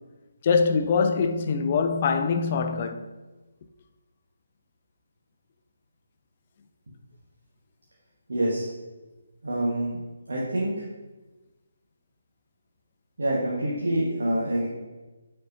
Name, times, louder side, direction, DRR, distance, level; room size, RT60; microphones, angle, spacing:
voice 1, 0.4-3.0, left 5 dB, 35° left, 0.4 m, -23 dB
voice 2, 8.3-8.7 9.4-10.0 10.3-10.8 13.2-14.7, right 1 dB, 60° right, 1.2 m, -26 dB
9.4 x 4.4 x 2.6 m
figure-of-eight pair, 145°, 0 cm